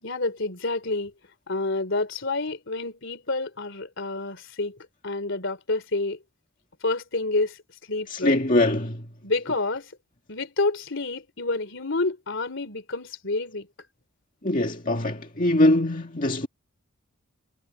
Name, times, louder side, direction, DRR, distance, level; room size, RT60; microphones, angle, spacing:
voice 1, 0.0-1.1 1.5-4.8 5.0-6.2 6.8-7.6 7.9-8.4 9.2-9.9 10.3-13.7, left 2 dB, 60° left, 3.7 m, -28 dB
voice 2, 8.1-9.1 14.4-16.5, left 1 dB, 40° left, 2.0 m, -22 dB
head